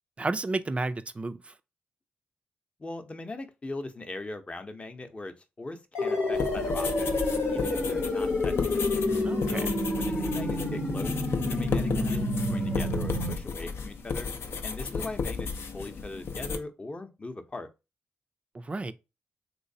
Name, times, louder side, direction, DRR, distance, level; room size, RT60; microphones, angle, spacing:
voice 1, 0.2-1.5 9.2-9.7 18.5-18.9, right 3 dB, 30° right, 0.3 m, -32 dB
voice 2, 2.8-7.1 7.5-8.8 9.5-9.7 10.0-11.2 11.5-14.3 14.6-17.7, left 2 dB, 30° left, 0.6 m, -40 dB
sound 1, 5.9-13.3, left 2 dB, 90° left, 0.9 m, -29 dB
sound 2, 6.3-16.6, left 5 dB, 70° left, 0.5 m, -34 dB
3.2 x 3.1 x 2.6 m
cardioid pair, 65°, 4 cm